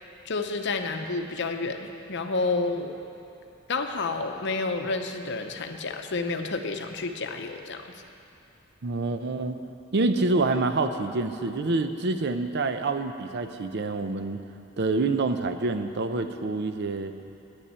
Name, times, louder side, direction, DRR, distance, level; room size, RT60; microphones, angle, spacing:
voice 1, 0.3-3.0 3.7-7.9, left 3 dB, 55° left, 6 dB, 0.7 m, -30 dB
voice 2, 8.8-9.6 9.9-14.4 14.8-17.1, right 3 dB, 50° right, 8 dB, 0.6 m, -27 dB
9.7 x 7.1 x 8.7 m, 2.7 s
head